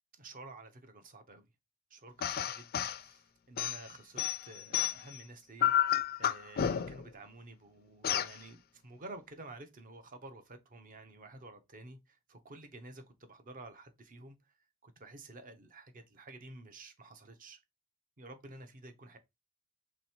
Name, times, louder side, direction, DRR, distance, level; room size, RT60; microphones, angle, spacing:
voice 1, 0.1-1.5 1.9-14.5 14.8-17.6 18.2-19.2, right 2 dB, 40° right, 0.7 m, -51 dB
sound 1, 2.2-3.0 3.6-5.2 5.6-7.1 8.0-8.4, left 10 dB, 45° left, 0.3 m, -31 dB
3.2 x 3.0 x 4.3 m
head